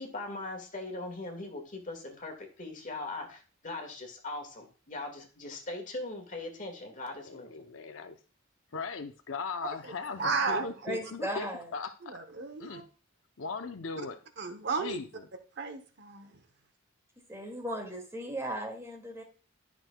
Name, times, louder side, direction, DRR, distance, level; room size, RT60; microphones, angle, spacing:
voice 1, 0.0-7.5, left 2 dB, 40° left, 1.8 m, -40 dB
voice 2, 7.3-8.2 8.7-12.2 12.6-12.9 13.4-14.2 14.7-15.2, left 4 dB, 70° left, 0.7 m, -39 dB
voice 3, 9.6-9.9 10.2-10.7 12.0-12.8 14.0-14.1 14.4-15.0 15.6-16.4, right 4 dB, 60° right, 0.9 m, -33 dB
voice 4, 10.8-11.7 17.3-19.2, right 1 dB, 15° right, 2.1 m, -36 dB
11.0 x 6.0 x 2.2 m
head